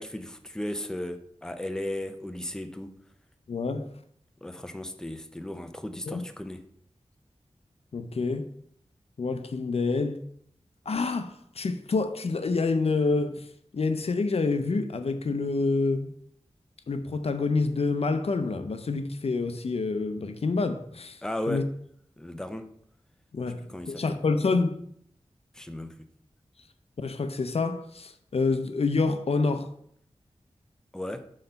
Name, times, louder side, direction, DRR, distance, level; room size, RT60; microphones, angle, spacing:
voice 1, 0.0-2.9 4.4-6.6 21.2-21.7 22.2-22.7 23.7-24.2 25.5-26.1 30.9-31.3, left 1 dB, 5° left, 0.6 m, -35 dB
voice 2, 3.5-3.9 6.1-6.2 7.9-8.5 9.2-10.2 10.9-13.5 13.7-16.1 16.9-21.2 21.5-21.6 23.3-24.8 27.0-29.7, left 3 dB, 65° left, 0.6 m, -27 dB
6.4 x 3.9 x 5.4 m
wide cardioid pair, 65°, 11 cm